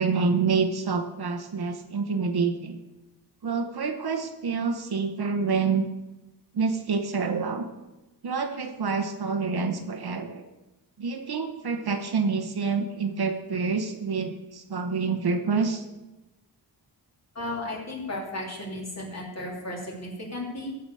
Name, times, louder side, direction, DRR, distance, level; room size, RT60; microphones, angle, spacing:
voice 1, 0.0-2.8 3.4-5.8 6.5-7.6 8.2-10.4 11.0-15.8, right 5 dB, 60° right, 5 dB, 1.2 m, -27 dB
voice 2, 17.3-20.7, left 1 dB, 35° left, -2 dB, 3.0 m, -34 dB
14.0 x 5.0 x 6.8 m, 1.0 s
wide cardioid pair, 105°, 43 cm